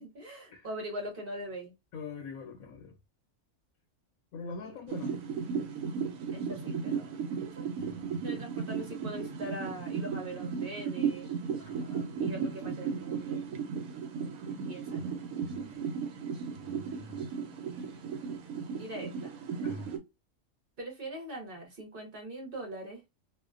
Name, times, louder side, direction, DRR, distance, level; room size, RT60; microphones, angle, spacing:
voice 1, 0.0-1.7 4.5-4.7 5.1-5.2 6.3-7.2 7.4-7.6 8.2-11.3 12.2-13.5 14.7-15.1 15.6-16.3 18.8-19.3 20.8-23.0, right 1 dB, 45° right, 0.9 m, -42 dB
voice 2, 1.9-3.0 4.3-5.2 7.7-8.2 11.6-12.4 14.9-15.1 15.4-15.8 16.6-17.3 17.7-17.9 19.6-19.9, left 4 dB, 75° left, 1.1 m, -45 dB
sound 1, 4.9-20.0, right 6 dB, 85° right, 1.0 m, -35 dB
2.5 x 2.1 x 2.4 m
omnidirectional pair, 1.5 m